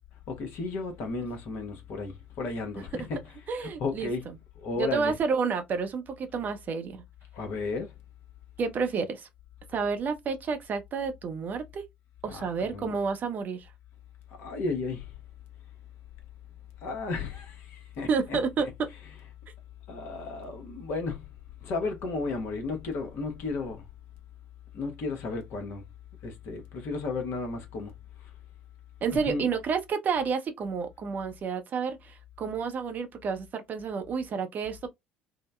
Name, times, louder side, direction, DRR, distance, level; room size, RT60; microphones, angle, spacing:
voice 1, 0.3-3.2 3.6-4.3 4.6-5.1 7.3-7.9 12.2-12.9 14.4-15.1 16.8-18.4 19.9-21.2 21.6-23.8 24.7-25.8 26.2-27.9 29.1-29.5, left 3 dB, 55° left, 0.9 m, -34 dB
voice 2, 3.5-4.1 4.8-7.0 8.6-9.3 9.7-11.8 12.2-13.7 18.1-18.7 29.0-34.9, right 5 dB, 40° right, 0.6 m, -30 dB
3.7 x 2.1 x 2.2 m
figure-of-eight pair, 55°, 5 cm